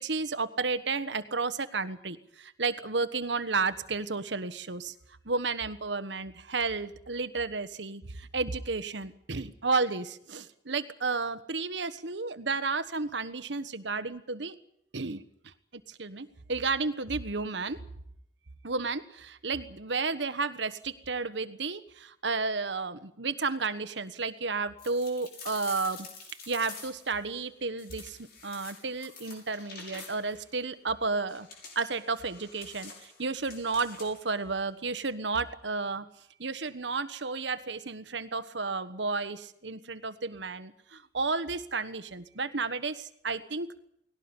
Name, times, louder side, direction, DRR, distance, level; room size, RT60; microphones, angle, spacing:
voice 1, 0.0-4.9 5.2-14.5 14.9-15.5 15.9-17.8 18.6-26.1 26.5-31.5 31.7-36.0 36.4-43.7, right 4 dB, 70° right, 13 dB, 1.4 m, -32 dB
sound 1, 24.8-27.2 27.8-30.4 31.3-34.3, left 4 dB, 55° left, 6.5 m, -47 dB
19.5 x 17.5 x 9.8 m, 0.73 s
head